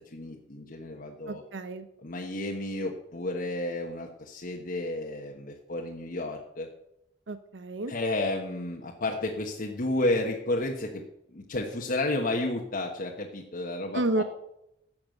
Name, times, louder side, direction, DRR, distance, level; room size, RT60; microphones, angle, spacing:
voice 1, 0.1-1.4 2.0-6.7 7.9-11.0 11.3-14.2, left 2 dB, 50° left, 0 dB, 1.2 m, -31 dB
voice 2, 1.3-1.9 7.3-7.9 13.9-14.2, right 2 dB, 80° right, 11 dB, 0.8 m, -30 dB
12.0 x 7.2 x 7.8 m, 0.82 s
head